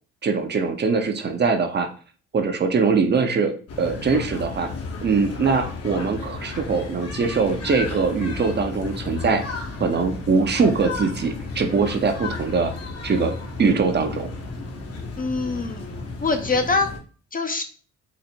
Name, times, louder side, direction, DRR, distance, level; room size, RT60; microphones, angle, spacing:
voice 1, 0.2-1.9 2.3-4.7 5.0-9.4 9.8-12.7 13.0-14.3, right 4 dB, 35° right, 6 dB, 0.6 m, -22 dB
sound 1, 3.7-17.0, left 3 dB, 55° left, 1.0 m, -33 dB
voice 2, 15.2-15.9 16.2-16.9 17.3-17.6, left 3 dB, 30° left, 6 dB, 0.6 m, -23 dB
4.0 x 2.0 x 4.3 m, 0.39 s
cardioid pair, 90°, 30 cm